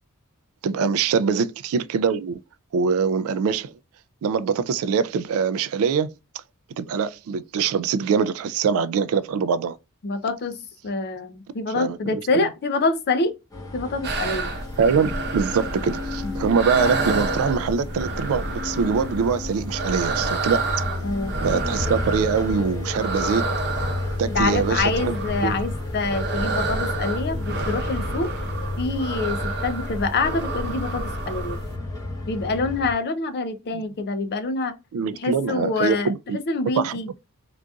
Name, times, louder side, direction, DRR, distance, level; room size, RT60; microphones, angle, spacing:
voice 1, 0.6-2.4 2.7-3.7 4.2-6.1 6.8-9.8 11.8-12.5 14.8-20.6 21.4-23.5 24.2-25.1 25.4-25.6 33.7-33.8 34.9-36.4 36.8-37.0, right 6 dB, 70° right, 0.3 m, -23 dB
voice 2, 10.0-10.6 10.8-13.3 13.7-14.5 16.2-16.4 21.0-21.3 24.2-28.3 28.8-31.6 32.3-34.7 35.1-36.1 36.5-37.1, left 3 dB, 50° left, 0.5 m, -26 dB
sound 1, 13.5-32.9, left 2 dB, 15° left, 1.0 m, -32 dB
sound 2, 14.0-31.8, right 3 dB, 50° right, 0.8 m, -29 dB
3.8 x 2.5 x 2.3 m
head